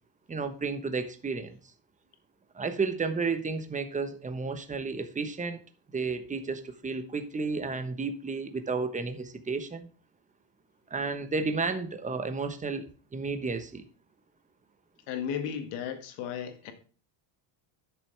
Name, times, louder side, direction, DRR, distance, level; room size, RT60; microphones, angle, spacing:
voice 1, 0.3-1.6 2.5-5.6 5.9-9.9 10.9-13.9, right 4 dB, 15° right, 1.0 m, -32 dB
voice 2, 15.1-16.7, left 8 dB, 80° left, 2.1 m, -34 dB
12.0 x 6.9 x 3.3 m
cardioid pair, 135°, 49 cm